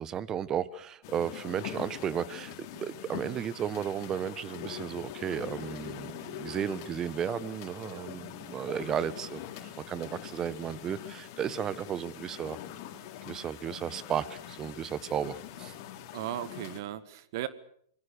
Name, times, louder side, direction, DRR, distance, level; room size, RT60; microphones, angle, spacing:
voice 1, 0.0-12.6 13.2-15.7, right 9 dB, 25° right, 19 dB, 1.2 m, -34 dB
sound 1, 1.0-16.8, left 11 dB, 50° left, 3.7 m, -43 dB
voice 2, 16.1-17.5, right 13 dB, 55° right, 16 dB, 1.6 m, -36 dB
26.5 x 22.5 x 6.7 m, 0.63 s
hypercardioid pair, 120°, 2 cm